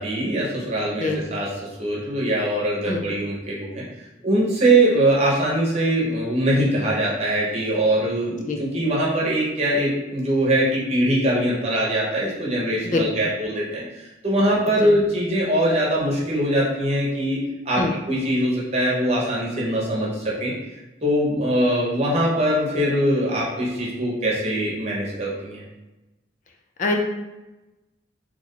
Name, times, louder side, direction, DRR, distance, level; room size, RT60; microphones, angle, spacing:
voice 1, 0.0-1.5 1.8-3.8 4.2-17.4 17.6-20.5 21.0-25.6, right 1 dB, 35° right, -5 dB, 1.0 m, -22 dB
voice 2, 1.0-1.2 2.9-3.0 8.5-8.6 12.8-13.0 14.8-14.9 17.8-17.9 26.8-27.0, left 3 dB, 45° left, 2 dB, 0.5 m, -23 dB
2.9 x 2.6 x 3.9 m, 1.0 s
head